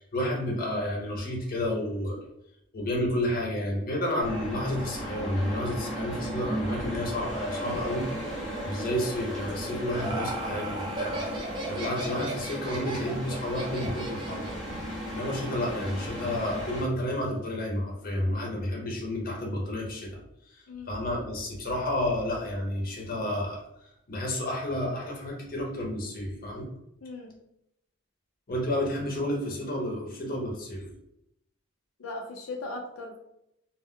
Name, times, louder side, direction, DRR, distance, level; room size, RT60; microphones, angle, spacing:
voice 1, 0.0-2.2 2.7-14.5 15.1-20.2 20.5-23.6 24.1-26.7 28.5-30.9, left 1 dB, 45° left, -1 dB, 0.6 m, -31 dB
sound 1, 4.2-16.8, equal, 5° left, 0.8 m, -35 dB
Laughter, 9.5-14.7, right 1 dB, 25° right, 0.4 m, -36 dB
voice 2, 27.0-27.4 32.0-33.2, left 2 dB, 90° left, 0 dB, 0.5 m, -38 dB
2.1 x 2.1 x 3.5 m, 0.79 s
head